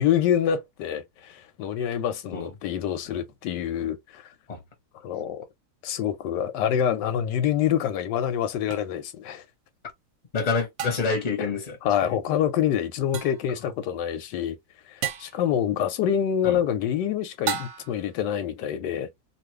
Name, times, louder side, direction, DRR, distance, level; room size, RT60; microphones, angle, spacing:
voice 1, 0.0-4.3 5.0-5.5 5.8-9.4 11.4-11.5 11.8-14.6 14.9-19.1, left 9 dB, 85° left, 1.2 m, -26 dB
sound 1, 8.7-8.8 10.8-11.3 13.1-13.5 15.0-15.4 17.5-18.1, right 8 dB, 65° right, 0.9 m, -32 dB
voice 2, 10.3-11.8 12.0-12.2 16.4-16.6, left 4 dB, 30° left, 0.9 m, -27 dB
2.9 x 2.5 x 3.0 m
omnidirectional pair, 1.9 m